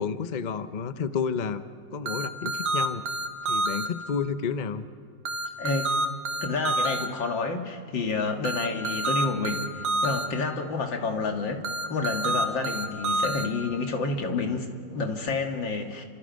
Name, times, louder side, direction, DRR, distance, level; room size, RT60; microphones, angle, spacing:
voice 1, 0.0-1.6 1.9-3.0 3.5-4.9, left 6 dB, 45° left, 11 dB, 0.6 m, -30 dB
sound 1, 2.1-3.9 5.3-7.1 8.5-10.3 11.6-13.5, right 2 dB, 80° right, 1.9 m, -27 dB
voice 2, 5.6-5.9 6.4-16.0, left 3 dB, 85° left, 4 dB, 2.6 m, -29 dB
29.5 x 26.0 x 5.3 m, 2.1 s
omnidirectional pair, 2.0 m